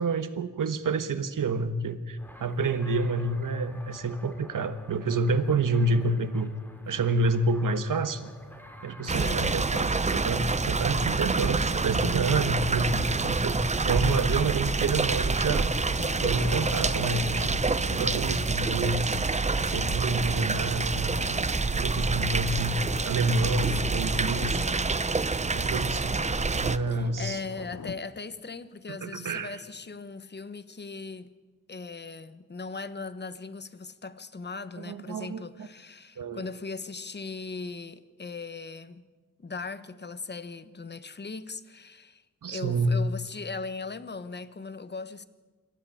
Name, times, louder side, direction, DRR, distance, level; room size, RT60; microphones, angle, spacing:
voice 1, 0.0-6.5 6.9-8.3 8.8-15.7 16.2-19.2 19.6-24.7 25.5-26.2 26.5-27.4 28.9-29.6 34.8-35.7 36.2-36.4 42.4-43.0, right 3 dB, 75° right, 1.4 m, -28 dB
sound 1, 2.2-19.8, equal, 5° left, 2.7 m, -47 dB
voice 2, 9.1-9.5 23.7-24.0 26.9-31.3 31.7-39.0 39.4-45.3, left 4 dB, 30° left, 1.1 m, -39 dB
sound 2, 9.1-26.8, right 3 dB, 20° right, 0.7 m, -27 dB
Thunder, 15.9-28.0, left 5 dB, 55° left, 1.2 m, -45 dB
27.0 x 13.5 x 8.6 m
wide cardioid pair, 120°, 32 cm